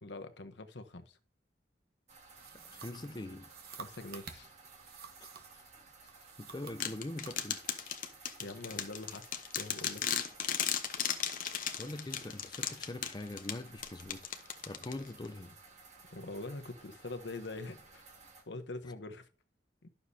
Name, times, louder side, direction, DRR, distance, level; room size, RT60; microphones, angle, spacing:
voice 1, 0.0-1.2 3.7-4.5 8.4-10.2 16.1-18.1 18.5-19.3 19.8-19.9, left 2 dB, 75° left, 1.0 m, -44 dB
sound 1, 2.1-18.4, right 4 dB, 40° right, 1.8 m, -57 dB
sound 2, 2.3-5.6 6.1-7.4, right 6 dB, 55° right, 1.2 m, -51 dB
voice 2, 2.5-3.5 5.2-5.3 6.4-7.6 11.8-14.2 14.7-15.6, left 2 dB, 25° left, 0.5 m, -43 dB
sound 3, 6.8-15.3, left 9 dB, 50° left, 1.0 m, -36 dB
11.5 x 6.7 x 2.7 m
head